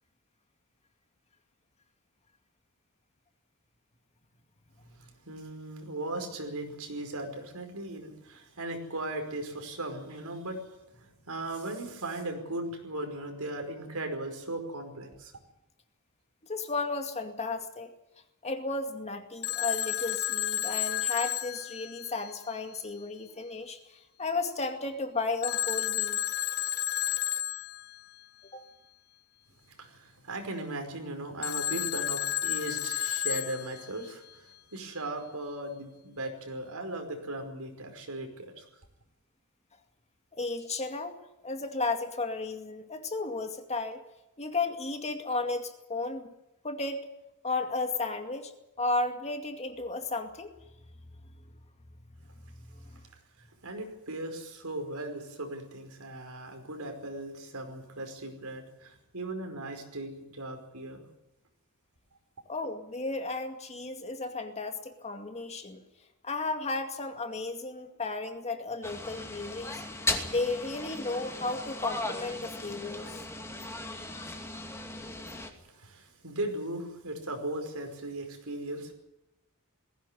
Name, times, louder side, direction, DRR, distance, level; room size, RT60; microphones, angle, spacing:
voice 1, 5.0-15.3 29.6-38.7 53.6-61.1 75.6-78.9, right 2 dB, 80° right, 5 dB, 5.3 m, -38 dB
voice 2, 16.4-17.9 18.4-26.3 28.5-28.6 40.4-41.2 41.4-44.0 44.4-46.2 46.6-47.1 47.4-48.5 48.8-50.5 52.6-53.0 62.5-65.8 66.2-69.8 70.3-73.3, left 3 dB, 30° left, 6 dB, 2.2 m, -34 dB
Telephone, 19.4-22.5 25.4-28.0 31.4-34.1, left 11 dB, 45° left, 0.9 m, -31 dB
sound 1, 68.8-75.5, left 2 dB, 10° left, 2.6 m, -37 dB
20.0 x 17.0 x 9.9 m, 0.93 s
head